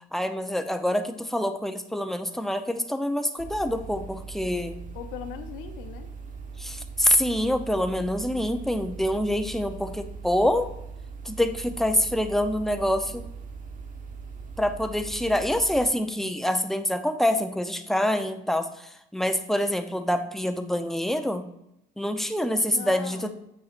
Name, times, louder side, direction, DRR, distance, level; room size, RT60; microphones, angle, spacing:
voice 1, 0.1-4.8 6.6-10.7 11.2-13.2 14.6-21.4 22.0-23.3, left 1 dB, ahead, 8 dB, 0.5 m, -26 dB
sound 1, 3.4-15.9, right 5 dB, 40° right, 0.9 m, -40 dB
voice 2, 4.9-6.1 22.4-23.3, left 9 dB, 90° left, 7 dB, 0.6 m, -39 dB
7.7 x 5.8 x 2.5 m, 0.83 s
cardioid pair, 100°, 20 cm